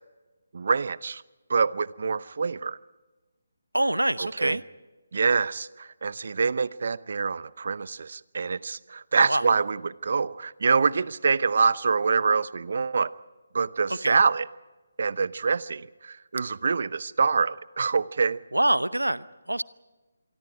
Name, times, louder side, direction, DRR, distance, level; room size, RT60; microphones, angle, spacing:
voice 1, 0.5-1.2 1.5-2.8 4.2-4.6 5.1-13.1 13.5-14.5 15.0-18.4, right 5 dB, 50° right, 19 dB, 0.7 m, -25 dB
voice 2, 3.7-4.6 9.3-9.4 13.9-14.2 18.5-19.6, right 1 dB, 85° right, 17 dB, 0.8 m, -25 dB
27.0 x 24.0 x 4.9 m, 1.2 s
figure-of-eight pair, 150°, 0 cm